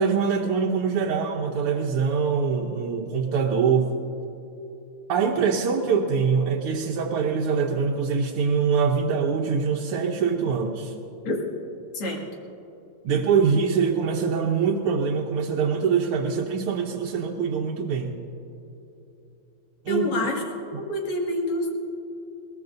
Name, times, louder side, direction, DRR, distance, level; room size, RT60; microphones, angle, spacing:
voice 1, 0.0-3.9 5.1-10.9 13.0-18.2 19.9-20.1, right 6 dB, 85° right, -1 dB, 1.8 m, -24 dB
voice 2, 19.9-20.4 20.9-21.7, left 1 dB, 75° left, -1 dB, 3.0 m, -26 dB
21.5 x 18.5 x 2.6 m, 3.0 s
omnidirectional pair, 2.4 m